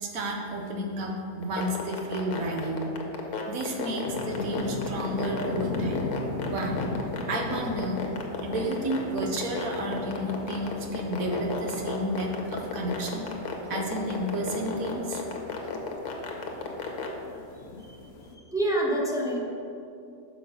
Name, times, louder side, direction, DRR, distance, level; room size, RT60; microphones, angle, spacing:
voice 1, 0.0-2.8 3.5-6.1 6.5-6.8 7.3-8.0 8.4-13.3 13.7-15.2, right 1 dB, 65° right, 1 dB, 1.2 m, -31 dB
sound 1, 1.4-17.1, left 6 dB, 80° left, 1.4 m, -33 dB
sound 2, 4.0-18.4, left 3 dB, 55° left, 0.7 m, -38 dB
voice 2, 18.4-19.4, right 1 dB, 5° right, -4 dB, 0.7 m, -27 dB
6.3 x 5.9 x 5.2 m, 2.5 s
omnidirectional pair, 1.6 m